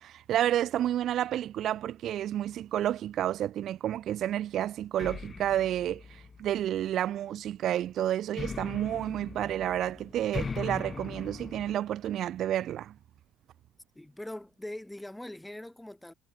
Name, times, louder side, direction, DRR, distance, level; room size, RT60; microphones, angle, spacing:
voice 1, 0.0-12.9, right 11 dB, 55° right, 0.6 m, -30 dB
sound 1, 5.0-6.9 8.4-11.8, left 4 dB, 30° left, 2.7 m, -40 dB
voice 2, 13.9-16.1, left 1 dB, 10° left, 2.5 m, -42 dB
figure-of-eight pair, 50°, 0 cm